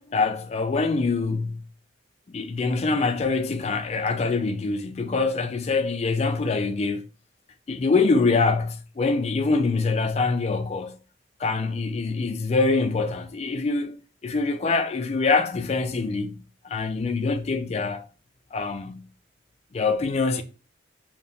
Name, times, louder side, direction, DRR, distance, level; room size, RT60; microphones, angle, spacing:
voice 1, 0.1-1.6 2.3-7.0 7.7-11.0 11.4-14.0 14.2-18.1 18.5-19.1 19.7-20.4, left 3 dB, 35° left, 0.3 m, -24 dB
3.5 x 2.7 x 2.6 m
head